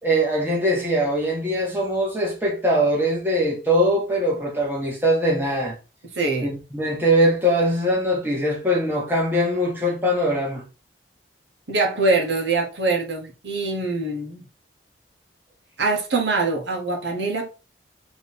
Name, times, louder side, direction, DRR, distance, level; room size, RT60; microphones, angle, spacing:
voice 1, 0.0-5.8 6.4-10.6, equal, 10° right, 1.2 m, -22 dB
voice 2, 6.1-6.5 11.7-14.4 15.8-17.5, right 3 dB, 70° right, 1.1 m, -23 dB
3.6 x 3.0 x 4.1 m
head